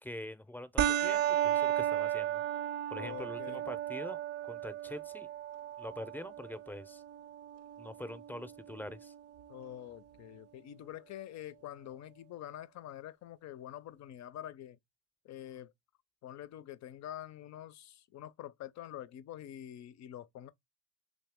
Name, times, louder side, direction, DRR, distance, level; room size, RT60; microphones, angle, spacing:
voice 1, 0.0-2.4 2.9-5.3 5.8-7.0 7.8-9.1, left 1 dB, 5° left, 0.5 m, -44 dB
sound 1, 0.8-9.8, right 11 dB, 55° right, 0.5 m, -35 dB
voice 2, 2.9-3.7 9.5-14.8 15.2-15.7 16.2-20.5, left 12 dB, 65° left, 0.5 m, -46 dB
3.2 x 3.1 x 3.5 m
cardioid pair, 90°, 30 cm